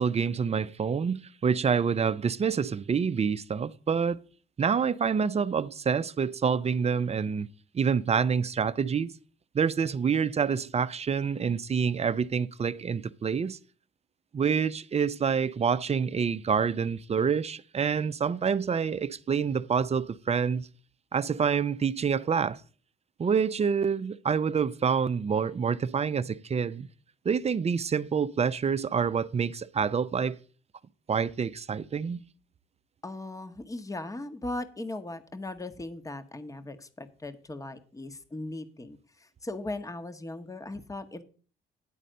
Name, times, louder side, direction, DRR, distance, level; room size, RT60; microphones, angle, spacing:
voice 1, 0.0-4.2 4.6-7.5 7.7-9.1 9.5-13.6 14.3-20.7 21.1-22.6 23.2-26.9 27.2-30.4 31.1-32.2, right 6 dB, 30° right, 0.5 m, -27 dB
voice 2, 33.0-41.2, left 2 dB, 15° left, 1.0 m, -38 dB
10.0 x 4.1 x 7.6 m
cardioid pair, 90°, 20 cm